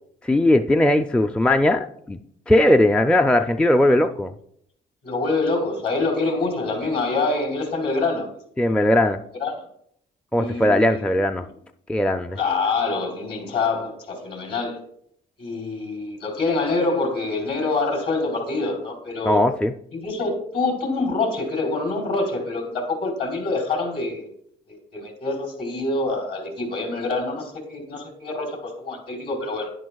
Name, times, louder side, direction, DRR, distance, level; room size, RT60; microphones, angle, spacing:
voice 1, 0.2-2.2 2.5-4.3 8.6-9.2 10.3-11.4 11.9-12.4 19.3-19.7, left 1 dB, 5° left, 0.4 m, -19 dB
voice 2, 5.0-8.3 9.4-9.5 10.4-11.1 12.3-14.8 15.4-19.4 19.9-24.3 24.7-29.7, left 3 dB, 55° left, 3.5 m, -26 dB
11.0 x 10.0 x 2.3 m
cardioid pair, 90°, 20 cm